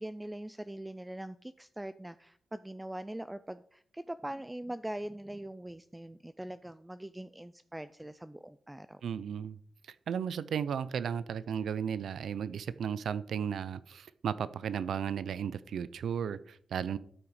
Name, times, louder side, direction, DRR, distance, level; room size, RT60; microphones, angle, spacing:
voice 1, 0.0-9.0, right 1 dB, 10° right, 13 dB, 0.3 m, -42 dB
voice 2, 9.0-9.6 10.1-17.0, right 7 dB, 80° right, 16 dB, 0.4 m, -34 dB
13.0 x 5.9 x 4.9 m, 0.63 s
wide cardioid pair, 120°, 0 cm